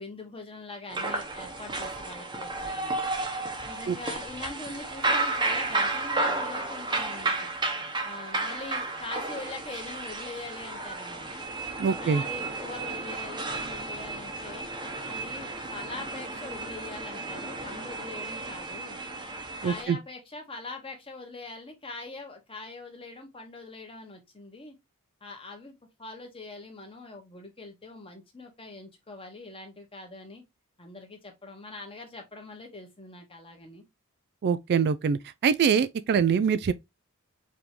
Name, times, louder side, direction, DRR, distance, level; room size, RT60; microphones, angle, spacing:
voice 1, 0.0-3.0 3.6-7.5 8.0-11.5 12.0-14.7 15.1-19.0 19.6-24.8 25.2-30.4 30.8-33.8, left 3 dB, 25° left, 1.4 m, -43 dB
sound 1, 0.9-19.8, right 3 dB, 20° right, 0.9 m, -32 dB
voice 2, 11.8-12.2 19.6-20.0 34.4-36.7, right 6 dB, 50° right, 0.3 m, -24 dB
5.0 x 3.5 x 3.0 m
head